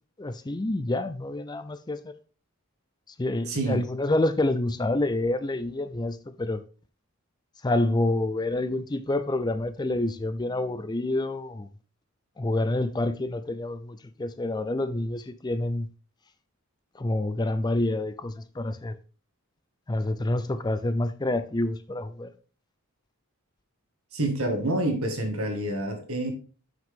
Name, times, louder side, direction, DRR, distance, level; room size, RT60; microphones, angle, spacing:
voice 1, 0.2-2.1 3.2-6.6 7.6-11.7 12.4-15.9 16.9-18.9 19.9-22.3, left 2 dB, 20° left, 0.4 m, -28 dB
voice 2, 3.5-3.9 24.1-26.3, right 1 dB, 75° right, 1.9 m, -27 dB
7.5 x 6.0 x 3.7 m
head